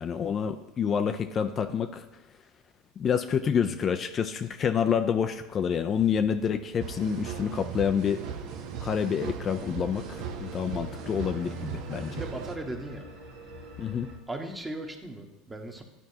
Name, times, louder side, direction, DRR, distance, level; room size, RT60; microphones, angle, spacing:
voice 1, 0.0-2.1 3.0-8.2 8.8-12.2 13.8-14.1, left 7 dB, 35° left, 7 dB, 0.4 m, -28 dB
sound 1, 5.0-14.2, left 2 dB, 75° right, 1.5 m, -48 dB
sound 2, 6.8-12.6, right 7 dB, 60° right, 0.6 m, -38 dB
voice 2, 12.1-13.1 14.3-15.8, right 2 dB, 15° right, 3 dB, 1.2 m, -37 dB
11.5 x 4.5 x 2.8 m, 0.98 s
hypercardioid pair, 85°, 0 cm